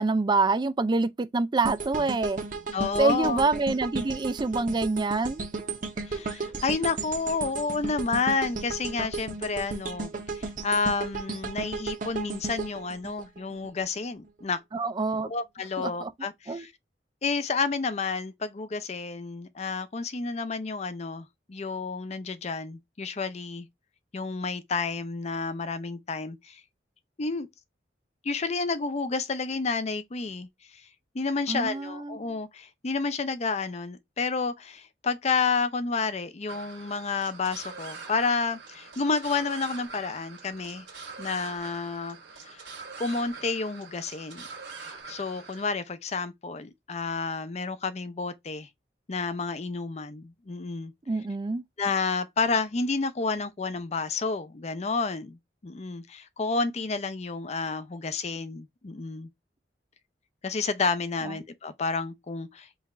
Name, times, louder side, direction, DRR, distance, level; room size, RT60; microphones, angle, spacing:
voice 1, 0.0-2.4 3.0-5.5 14.7-15.3 15.8-16.1 16.5-16.7 31.5-32.2 51.1-51.6 61.2-61.4, right 3 dB, 25° right, 0.4 m, -26 dB
sound 1, 1.6-13.8 14.2-14.4, right 3 dB, 45° right, 0.8 m, -35 dB
voice 2, 2.7-3.4 6.0-14.6 15.2-16.7 17.2-23.7 24.1-26.6 27.2-27.5 28.2-30.5 30.7-30.9 31.1-40.9 41.2-42.2 42.4-42.6 43.0-44.5 44.8-48.7 49.1-50.9 51.8-55.4 55.6-59.3 60.4-62.7, left 4 dB, 40° left, 0.5 m, -30 dB
sound 2, 36.5-45.7, right 4 dB, 75° right, 1.7 m, -44 dB
3.9 x 2.4 x 4.1 m
head